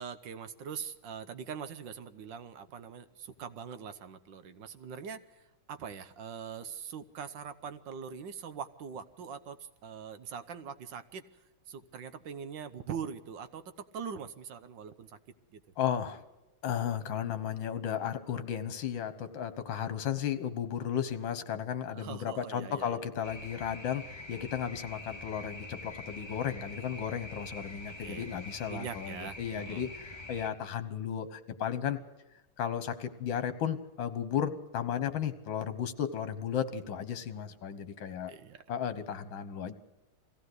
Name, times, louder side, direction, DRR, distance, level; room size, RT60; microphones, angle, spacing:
voice 1, 0.0-5.4 5.7-9.6 9.8-11.2 11.7-13.6 13.9-15.2 15.5-15.6 21.9-23.0 28.0-28.3 28.7-29.8 38.3-38.6, right 7 dB, 65° right, 11 dB, 1.5 m, -42 dB
voice 2, 15.8-16.2 16.6-32.0 32.6-38.3 38.7-39.7, left 8 dB, 70° left, 11 dB, 1.9 m, -34 dB
sound 1, 23.2-30.5, left 2 dB, 15° left, 2.1 m, -45 dB
22.0 x 16.0 x 8.0 m, 1.0 s
omnidirectional pair, 2.2 m